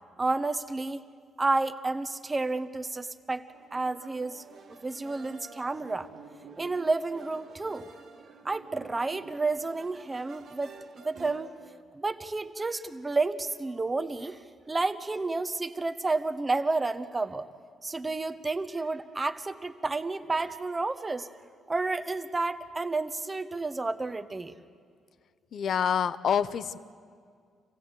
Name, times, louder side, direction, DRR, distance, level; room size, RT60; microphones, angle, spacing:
voice 1, 0.2-1.0 1.4-4.4 4.8-6.1 6.6-7.9 8.4-11.5 11.9-14.4 14.7-17.5 17.8-21.3 21.7-24.5, right 3 dB, 25° right, 11 dB, 1.0 m, -31 dB
sound 1, 3.5-11.8, right 4 dB, 60° right, 1.7 m, -50 dB
voice 2, 25.5-26.8, left 8 dB, 60° left, 14 dB, 0.7 m, -27 dB
26.5 x 16.5 x 8.2 m, 2.1 s
cardioid pair, 90°, 0 cm